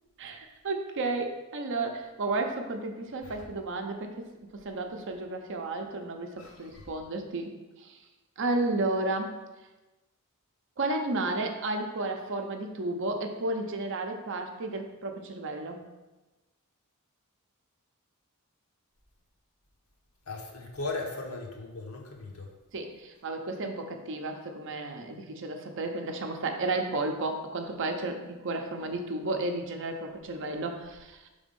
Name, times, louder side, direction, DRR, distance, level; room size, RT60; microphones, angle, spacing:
voice 1, 0.2-4.3 4.6-8.0 8.4-9.4 10.8-15.8 22.7-31.3, right 2 dB, 60° right, 4 dB, 0.7 m, -32 dB
voice 2, 6.4-6.9 20.3-22.5, left 3 dB, 70° left, 1 dB, 1.1 m, -38 dB
5.1 x 3.5 x 5.3 m, 1.1 s
head